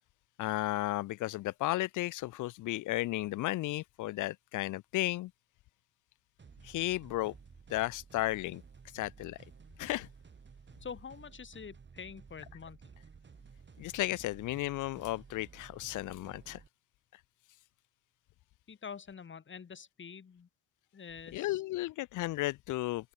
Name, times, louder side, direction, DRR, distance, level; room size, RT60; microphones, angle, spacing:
voice 1, 0.4-5.3 6.6-7.3 7.7-8.6 8.9-9.4 9.8-10.1 13.8-16.6 21.3-23.1, left 17 dB, 90° left, 1.0 m, -34 dB
sound 1, 6.4-16.7, right 5 dB, 35° right, 4.6 m, -55 dB
voice 2, 10.8-12.8 18.7-20.5 20.9-21.6, left 6 dB, 40° left, 2.9 m, -46 dB
open air
cardioid pair, 90°, 30 cm